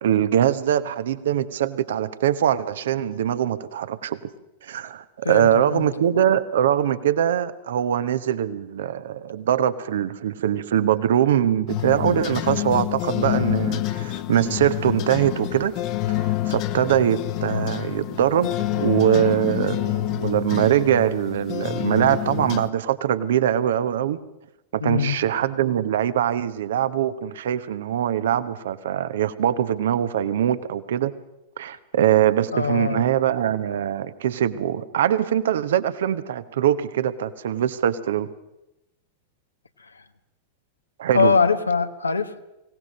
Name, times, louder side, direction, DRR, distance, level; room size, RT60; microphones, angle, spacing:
voice 1, 0.0-4.2 4.6-15.7 16.1-18.5 18.8-24.2 24.7-31.1 31.6-38.3 41.0-41.3, right 10 dB, 60° right, 14 dB, 1.1 m, -22 dB
voice 2, 5.2-5.9 24.8-25.2 32.5-33.1 41.1-42.4, left 5 dB, 75° left, 9 dB, 1.3 m, -22 dB
sound 1, 11.7-22.7, left 14 dB, 40° left, 1.2 m, -27 dB
24.0 x 17.5 x 6.6 m, 0.93 s
figure-of-eight pair, 90°, 0 cm